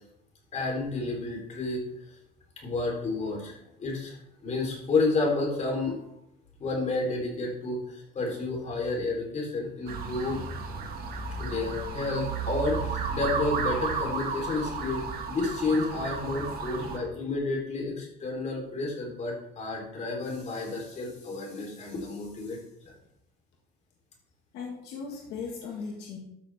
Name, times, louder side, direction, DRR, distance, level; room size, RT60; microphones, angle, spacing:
voice 1, 0.5-1.8 2.6-4.2 4.4-6.0 6.6-10.4 11.3-22.6 22.8-22.9, left 3 dB, 45° left, 0 dB, 3.7 m, -30 dB
sound 1, 9.9-17.0, right 5 dB, 65° right, 1.8 m, -33 dB
voice 2, 24.5-26.2, left 5 dB, 85° left, 0 dB, 1.8 m, -37 dB
13.0 x 6.4 x 3.5 m, 0.80 s
cardioid pair, 110°, 17 cm